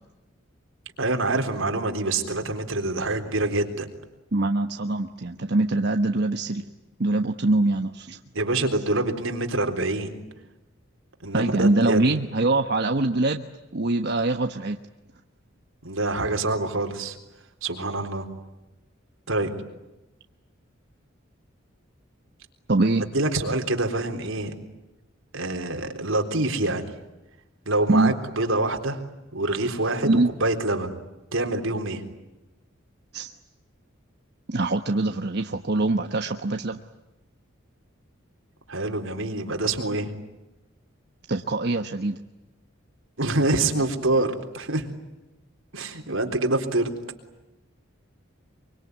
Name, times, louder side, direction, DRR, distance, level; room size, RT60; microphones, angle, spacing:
voice 1, 1.0-3.9 8.3-10.2 11.2-12.1 15.8-17.2 17.6-18.3 19.3-19.5 23.1-24.5 25.3-26.9 27.7-29.0 29.3-31.0 31.3-32.0 38.7-40.1 43.2-44.9 45.7-46.9, right 2 dB, 85° right, 4 dB, 3.8 m, -26 dB
voice 2, 4.3-6.6 7.0-8.2 11.3-13.4 13.7-14.8 22.7-23.0 27.9-28.1 30.0-30.3 33.1-33.3 34.5-36.8 41.3-42.2, right 2 dB, 55° right, 5 dB, 1.2 m, -23 dB
24.5 x 24.5 x 9.5 m, 1.0 s
head